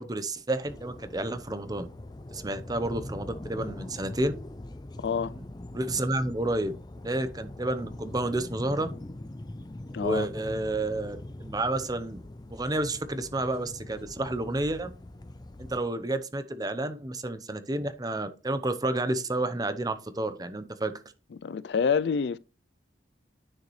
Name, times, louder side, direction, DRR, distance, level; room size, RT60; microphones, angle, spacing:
voice 1, 0.0-1.9 2.3-4.3 5.4-5.5 5.7-6.7 7.0-9.0 10.0-12.2 12.5-14.9 15.6-21.0, right 2 dB, 20° right, 0.8 m, -30 dB
sound 1, 0.6-15.8, left 1 dB, 25° left, 0.5 m, -42 dB
voice 2, 5.0-5.4 9.9-10.3 21.3-22.4, left 6 dB, 75° left, 0.4 m, -27 dB
9.9 x 6.6 x 3.2 m
head